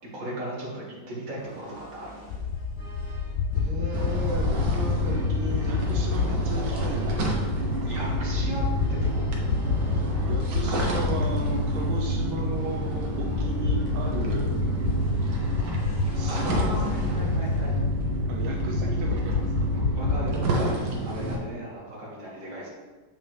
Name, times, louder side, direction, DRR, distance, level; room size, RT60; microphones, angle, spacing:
voice 1, 0.1-2.1 7.9-8.6 8.9-9.3 16.3-17.7 19.8-22.7, equal, 45° right, -6 dB, 2.4 m, -36 dB
sound 1, 1.4-17.1, right 1 dB, 5° left, 2.2 m, -50 dB
sound 2, 2.3-20.4, left 5 dB, 85° left, 0.8 m, -29 dB
voice 2, 3.5-7.8 10.3-14.5 16.1-16.9 18.3-19.5, right 2 dB, 90° right, -1 dB, 1.6 m, -35 dB
sound 3, 3.9-21.4, right 2 dB, 65° right, 1.6 m, -29 dB
7.3 x 5.6 x 3.4 m, 1.3 s
omnidirectional pair, 2.1 m